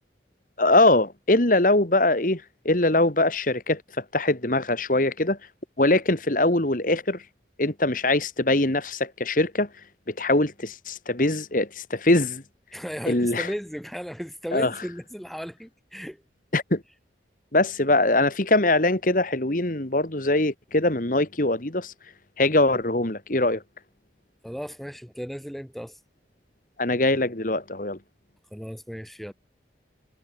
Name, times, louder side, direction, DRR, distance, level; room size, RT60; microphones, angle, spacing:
voice 1, 0.6-3.8 4.1-5.4 5.8-7.2 7.6-9.7 10.2-12.4 13.1-13.5 14.5-14.7 16.5-16.8 17.5-21.9 22.4-23.6 26.8-28.0, left 2 dB, 50° left, 2.1 m, -22 dB
voice 2, 12.7-16.2 24.4-26.0 28.5-29.3, equal, ahead, 3.7 m, -35 dB
head